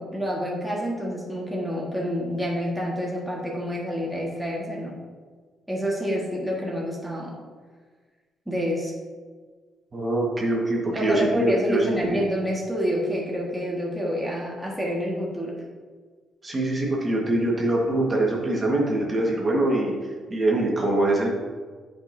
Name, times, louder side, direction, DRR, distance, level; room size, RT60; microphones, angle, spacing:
voice 1, 0.0-5.0 5.7-7.4 8.5-8.9 10.9-15.6, equal, ahead, -4 dB, 1.4 m, -28 dB
voice 2, 9.9-12.2 16.4-21.3, right 1 dB, 30° right, -2 dB, 1.4 m, -24 dB
8.7 x 5.2 x 2.6 m, 1.5 s
cardioid pair, 90°, 0 cm